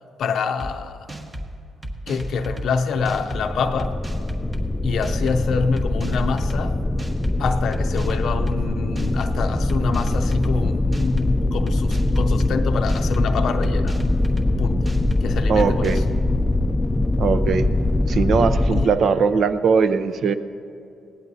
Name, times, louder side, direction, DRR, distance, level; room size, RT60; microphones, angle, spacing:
voice 1, 0.2-1.1 2.1-4.0 4.8-6.8 7.4-14.0 14.6-14.9 15.2-16.0 18.7-18.9, left 5 dB, 70° left, 5 dB, 0.6 m, -26 dB
sound 1, 0.6-0.7 1.1-1.5 1.8-2.7 3.0-3.4 3.8-4.6 5.0-5.4 5.8-6.6 7.0-7.3 7.7-8.6 9.0-9.3 9.7-10.5 10.9-11.3 11.7-12.5 12.9-13.3 13.6-14.5 14.9-15.2 15.6-16.1, right 1 dB, 30° right, 1.5 m, -32 dB
sound 2, 2.9-18.9, left 2 dB, 15° left, 0.4 m, -22 dB
voice 2, 15.5-16.0 17.2-17.6 18.1-20.3, right 5 dB, 65° right, 11 dB, 0.7 m, -20 dB
20.0 x 17.5 x 2.7 m, 2.5 s
cardioid pair, 90°, 0 cm